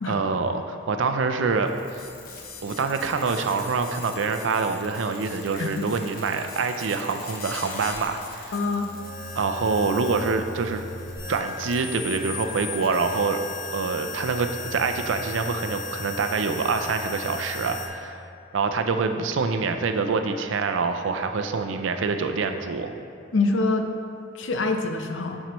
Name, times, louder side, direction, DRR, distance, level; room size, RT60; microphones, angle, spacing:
voice 1, 0.1-2.0 2.6-8.5 9.3-10.8 11.3-13.4 13.7-18.2 18.5-22.9, right 4 dB, 80° right, 7 dB, 0.4 m, -26 dB
sound 1, 1.6-17.9, left 3 dB, 50° left, 0.9 m, -37 dB
voice 2, 5.6-5.9 8.5-8.9 23.3-23.8 24.3-25.4, left 3 dB, 75° left, 4 dB, 0.6 m, -25 dB
7.3 x 6.5 x 3.0 m, 2.4 s
head